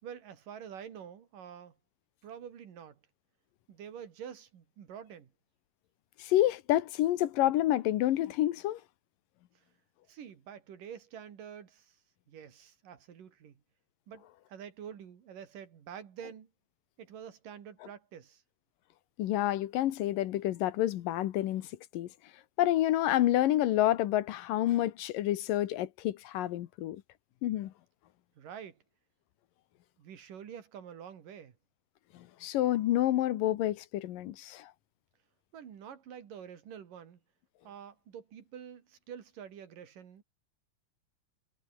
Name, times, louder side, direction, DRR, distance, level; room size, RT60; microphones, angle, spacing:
voice 1, 0.0-1.8 2.2-3.0 3.7-5.3 9.6-9.7 10.1-12.0 12.3-13.6 14.1-16.5 17.0-18.4 28.4-28.8 30.0-31.6 35.5-37.2 37.6-40.2, right 8 dB, 75° right, 4.1 m, -47 dB
voice 2, 6.2-8.8 19.2-21.7 21.9-22.1 22.6-27.0 27.4-27.7 32.1-34.7, left 13 dB, 80° left, 2.8 m, -28 dB
omnidirectional pair, 3.9 m